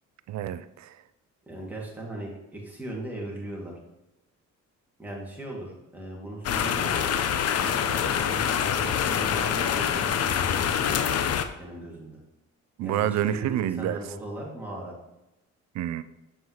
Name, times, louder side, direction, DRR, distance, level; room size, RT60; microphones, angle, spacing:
voice 1, 0.3-0.9 12.8-14.0 15.8-16.0, right 11 dB, 70° right, 13 dB, 0.4 m, -28 dB
voice 2, 1.5-3.7 5.0-7.0 7.6-11.3 11.6-12.2 12.8-15.0, right 1 dB, 5° right, -4 dB, 2.3 m, -38 dB
sound 1, 6.4-11.4, left 8 dB, 55° left, 0.6 m, -25 dB
7.8 x 5.4 x 3.1 m, 0.94 s
cardioid pair, 100°, 30 cm